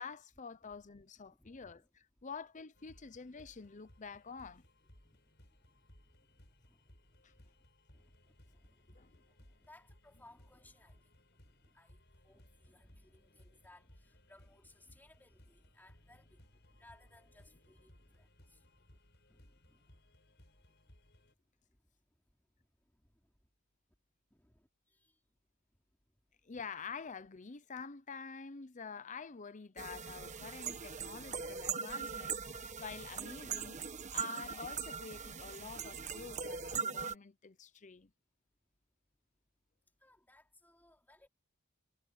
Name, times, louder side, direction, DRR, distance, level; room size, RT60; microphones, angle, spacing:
voice 1, 0.0-4.6 7.2-7.3 9.0-9.1 26.4-33.8 34.1-38.1, left 5 dB, 35° left, 0.7 m, -48 dB
voice 2, 1.3-1.9 5.1-7.6 7.9-19.0 19.3-20.0 21.8-21.9 22.9-23.3 24.3-25.2 31.0-31.1 40.0-41.3, left 1 dB, 10° left, 3.3 m, -65 dB
sound 1, 2.7-21.3, left 1 dB, 55° left, 6.5 m, -64 dB
sound 2, 29.8-37.1, right 6 dB, 35° right, 1.3 m, -41 dB
head